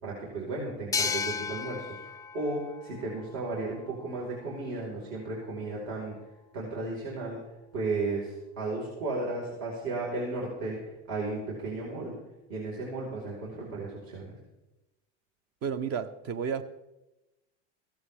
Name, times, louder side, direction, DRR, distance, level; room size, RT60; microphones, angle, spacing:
voice 1, 0.0-6.2 6.5-7.4 7.7-10.8 11.1-12.1 12.5-14.3, right 3 dB, 65° right, -4 dB, 4.8 m, -34 dB
sound 1, 0.9-4.3, left 6 dB, 10° left, 0.4 m, -35 dB
voice 2, 15.6-16.6, right 7 dB, 45° right, 11 dB, 1.0 m, -32 dB
16.0 x 14.5 x 3.6 m, 1.0 s
supercardioid pair, 120°, 34 cm